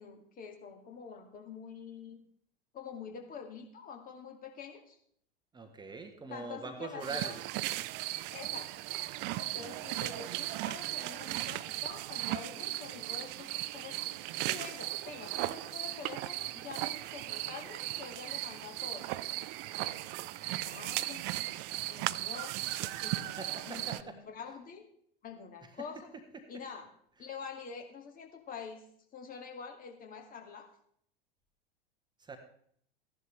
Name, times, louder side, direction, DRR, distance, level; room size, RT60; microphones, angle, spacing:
voice 1, 0.0-2.2 2.7-5.0 6.3-7.4 8.3-8.8 9.4-14.0 14.4-19.1 19.9-20.3 20.6-24.8 25.2-26.1 26.5-26.9 27.2-28.8 29.1-30.7, left 6 dB, 30° left, 3 dB, 2.3 m, -46 dB
voice 2, 5.5-7.3 9.6-9.8 23.4-24.1 32.2-32.4, right 4 dB, 15° right, 5 dB, 1.3 m, -42 dB
sound 1, 7.0-24.0, right 17 dB, 35° right, 0.5 m, -37 dB
15.0 x 11.0 x 3.3 m, 0.65 s
figure-of-eight pair, 90°, 30 cm